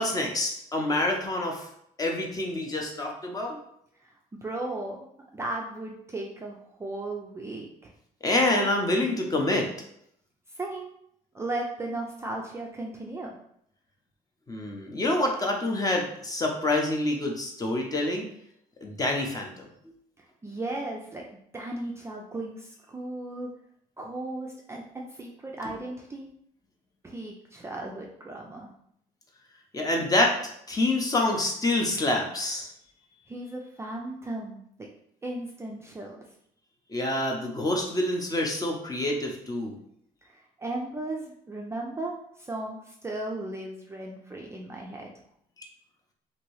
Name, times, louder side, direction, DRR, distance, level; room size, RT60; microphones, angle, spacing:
voice 1, 0.0-1.7 2.0-3.6 8.2-9.7 14.5-18.2 18.8-19.5 29.7-30.3 30.7-32.7 36.9-39.8, left 1 dB, 20° left, 1 dB, 0.7 m, -27 dB
voice 2, 4.0-7.9 10.5-10.9 11.3-13.4 20.2-23.5 24.0-26.3 27.0-28.7 33.3-34.9 35.2-36.2 40.2-45.1, right 2 dB, 15° right, -1 dB, 0.4 m, -36 dB
2.8 x 2.6 x 3.1 m, 0.71 s
cardioid pair, 110°, 17 cm